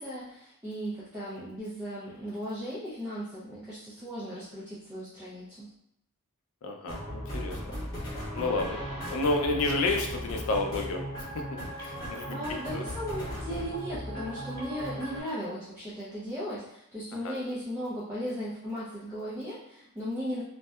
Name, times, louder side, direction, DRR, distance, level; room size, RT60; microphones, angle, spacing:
voice 1, 0.0-5.7 11.8-12.0 12.3-20.4, equal, 10° right, -10 dB, 0.4 m, -37 dB
voice 2, 6.6-7.5 8.3-8.8 9.1-11.0 11.8-12.4 12.7-12.8 17.2-17.3, left 2 dB, 65° left, 3 dB, 0.4 m, -29 dB
sound 1, 6.9-15.2, equal, 15° left, 1.1 m, -37 dB
2.6 x 2.1 x 2.3 m, 0.75 s
head